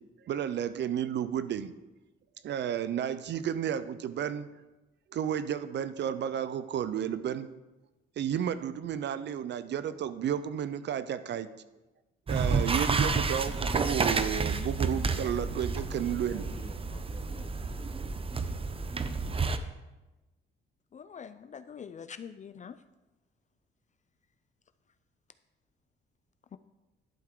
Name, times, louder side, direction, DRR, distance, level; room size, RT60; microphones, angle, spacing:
voice 1, 0.3-1.7 2.4-4.5 5.1-7.5 8.2-11.5 12.3-16.4, right 9 dB, 60° right, 13 dB, 0.6 m, -32 dB
sound 1, 12.3-19.6, right 4 dB, 30° right, 0.7 m, -30 dB
voice 2, 15.9-18.0, left 3 dB, 20° left, 7 dB, 1.0 m, -52 dB
voice 3, 20.9-22.8 26.5-26.6, left 7 dB, 40° left, 11 dB, 0.4 m, -44 dB
11.5 x 7.6 x 3.8 m, 1.1 s
cardioid pair, 90°, 20 cm